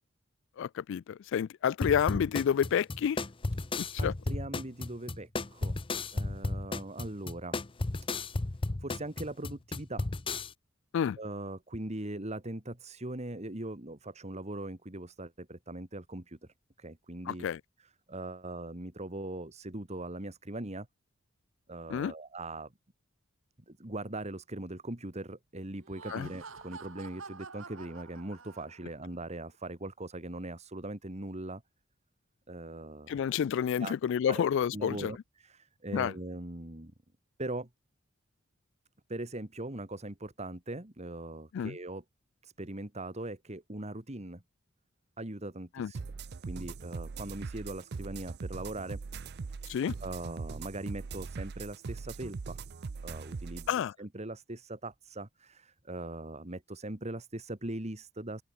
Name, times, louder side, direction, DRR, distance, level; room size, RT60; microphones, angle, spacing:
voice 1, 0.6-3.2 3.8-4.1 10.9-11.2 17.3-17.6 21.9-22.1 26.1-26.3 33.1-35.1 35.9-36.1 41.5-41.8 45.8-45.9 49.7-49.9 53.7-53.9, left 8 dB, 65° left, 0.3 m, -29 dB
sound 1, 1.8-10.5, left 2 dB, 25° left, 0.7 m, -34 dB
voice 2, 4.0-5.8 6.1-7.6 8.8-10.1 11.2-16.4 16.8-17.5 18.1-20.9 21.7-22.7 23.7-31.6 32.5-33.1 33.8-34.0 34.3-34.4 34.7-36.9 37.4-37.7 39.1-42.0 42.4-44.4 45.2-46.0 46.4-49.0 49.6-52.6 53.0-58.4, right 1 dB, 35° right, 2.3 m, -40 dB
Laughter, 25.8-29.0, right 4 dB, 75° right, 2.4 m, -48 dB
sound 2, 45.9-53.7, right 4 dB, 55° right, 0.5 m, -41 dB
open air
head